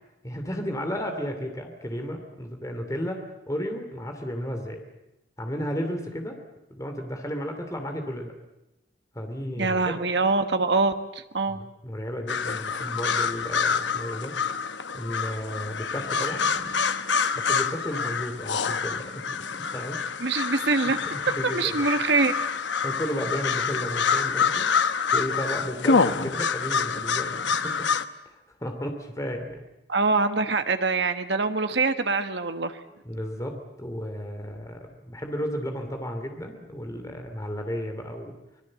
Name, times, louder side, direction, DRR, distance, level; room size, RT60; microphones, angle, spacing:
voice 1, 0.2-4.8 5.4-6.4 6.7-8.3 9.1-10.0 11.8-14.3 14.9-16.7 17.3-19.1 19.5-20.0 21.0-21.8 22.8-24.7 25.1-27.3 27.6-27.9 28.2-29.6 33.0-34.8 35.1-38.3, equal, 20° left, 5 dB, 2.7 m, -33 dB
voice 2, 9.6-11.6 20.2-21.0 21.4-22.3 29.9-32.8, right 3 dB, 75° right, 8 dB, 1.3 m, -24 dB
sound 1, 12.3-28.1, left 5 dB, 90° left, 1.0 m, -27 dB
25.5 x 20.5 x 7.6 m, 0.94 s
head